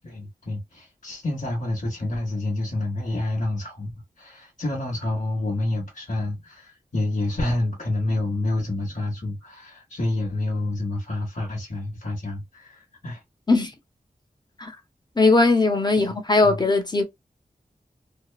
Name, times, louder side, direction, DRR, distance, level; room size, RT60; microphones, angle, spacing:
voice 1, 0.0-3.9 4.2-13.2 16.4-16.6, left 2 dB, 50° left, 1.1 m, -28 dB
voice 2, 15.2-17.0, left 3 dB, 25° left, 0.9 m, -19 dB
2.8 x 2.2 x 2.3 m
cardioid pair, 45°, 16 cm